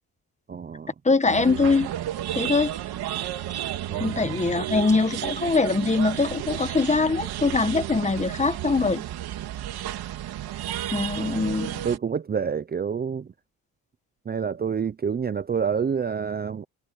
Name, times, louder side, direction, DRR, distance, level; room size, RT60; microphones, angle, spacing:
voice 1, 0.5-0.9 3.9-4.4 11.2-11.4 11.8-13.3 14.3-16.6, right 6 dB, 25° right, 0.6 m, -28 dB
voice 2, 1.0-1.9 2.3-2.7 4.0-9.0 10.9-11.8, left 4 dB, 20° left, 1.3 m, -23 dB
sound 1, 1.3-12.0, right 12 dB, 80° right, 3.3 m, -32 dB
cardioid pair, 105°, 38 cm